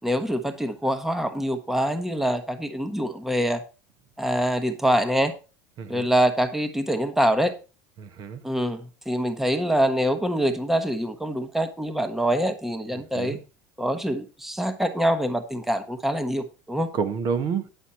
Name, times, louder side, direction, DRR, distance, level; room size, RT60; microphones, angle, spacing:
voice 1, 0.0-3.6 4.2-5.3 5.9-7.5 8.4-13.4 13.8-16.9, equal, 5° right, 1.1 m, -25 dB
voice 2, 8.0-8.4 13.1-13.4 16.9-17.7, right 6 dB, 50° right, 1.2 m, -28 dB
10.0 x 6.4 x 4.3 m
supercardioid pair, 110°, 9 cm